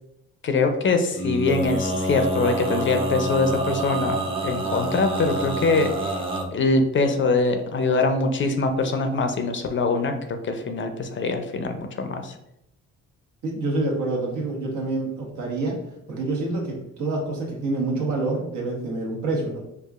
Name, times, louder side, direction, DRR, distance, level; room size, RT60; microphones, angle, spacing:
voice 1, 0.4-5.9 6.5-10.1 10.4-12.3, left 3 dB, 40° left, 6 dB, 0.5 m, -23 dB
Male singing, 1.1-6.5, right 1 dB, 20° right, 0.6 m, -27 dB
voice 2, 13.4-15.8 16.1-19.6, right 2 dB, 80° right, -1 dB, 1.1 m, -27 dB
4.7 x 2.4 x 2.4 m, 0.82 s
cardioid pair, 90°, 30 cm